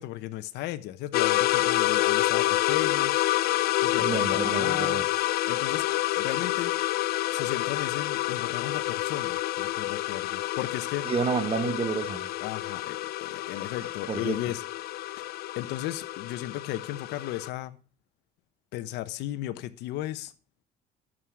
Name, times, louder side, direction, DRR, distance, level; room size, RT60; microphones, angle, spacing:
voice 1, 0.0-3.2 3.8-5.0 5.5-6.7 7.3-11.1 12.4-14.6 15.6-17.8 18.7-20.3, left 14 dB, 90° left, 1.0 m, -35 dB
sound 1, 1.1-17.5, left 15 dB, 65° left, 0.5 m, -28 dB
voice 2, 4.0-5.0 11.0-12.3 14.1-14.4, right 5 dB, 35° right, 1.3 m, -29 dB
11.0 x 7.5 x 6.2 m
cardioid pair, 110°, 17 cm